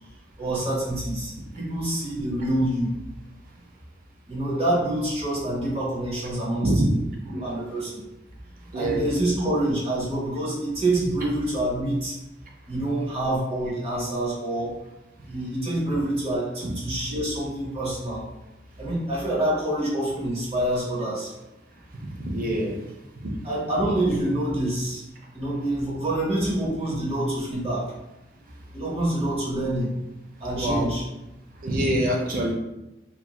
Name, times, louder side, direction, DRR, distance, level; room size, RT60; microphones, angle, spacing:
voice 1, 0.4-2.9 4.3-6.7 7.3-8.0 8.7-12.1 12.7-14.7 15.2-18.2 18.8-21.3 23.4-25.0 25.3-27.9 28.7-29.9 30.4-31.0, right 1 dB, 30° right, -6 dB, 0.9 m, -26 dB
voice 2, 22.2-22.7 23.2-23.3 30.6-30.9 31.6-32.5, right 1 dB, 45° right, 0 dB, 0.5 m, -24 dB
3.0 x 2.5 x 2.3 m, 0.95 s
head